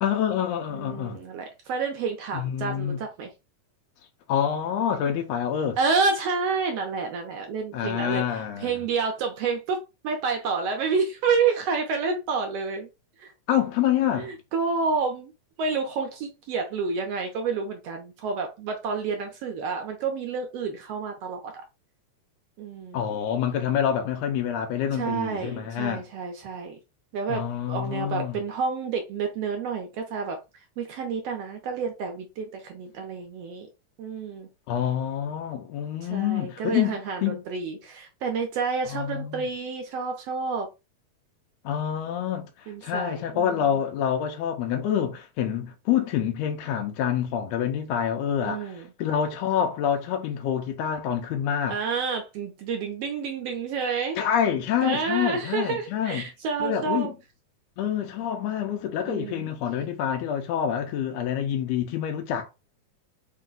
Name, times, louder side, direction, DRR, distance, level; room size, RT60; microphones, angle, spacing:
voice 1, 0.0-1.2 2.3-3.0 4.3-5.8 7.7-8.8 13.5-14.3 22.9-26.0 27.3-28.4 34.7-37.4 38.9-39.4 41.6-51.8 54.2-56.3 56.6-57.1 57.8-62.5, left 9 dB, 80° left, 1.5 m, -27 dB
voice 2, 0.7-3.3 5.8-8.2 8.6-12.9 13.2-13.3 14.1-15.3 15.6-21.6 22.6-23.0 24.9-26.8 27.1-30.4 30.8-33.7 34.0-34.5 36.0-40.7 42.7-43.7 48.4-48.9 51.7-54.2 54.8-57.1 59.0-59.5, right 5 dB, 75° right, 1.5 m, -29 dB
4.7 x 2.2 x 3.8 m
omnidirectional pair, 3.5 m